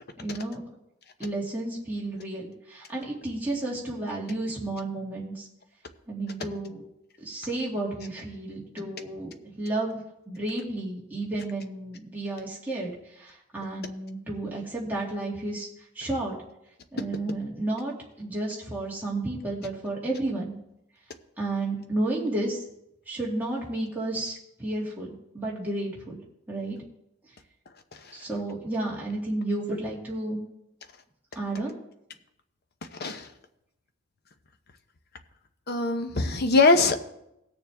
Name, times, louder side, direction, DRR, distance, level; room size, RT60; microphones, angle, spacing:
voice 1, 0.2-0.6 1.2-5.5 6.1-6.9 7.2-9.3 9.6-10.0 10.3-15.7 15.9-16.4 16.9-20.5 21.4-22.6 23.1-26.2 26.5-26.8 28.1-30.4 31.4-31.7, right 2 dB, 10° right, -5 dB, 2.4 m, -32 dB
voice 2, 35.7-37.0, left 3 dB, 45° left, 7 dB, 0.9 m, -21 dB
18.5 x 6.9 x 3.5 m, 0.81 s
head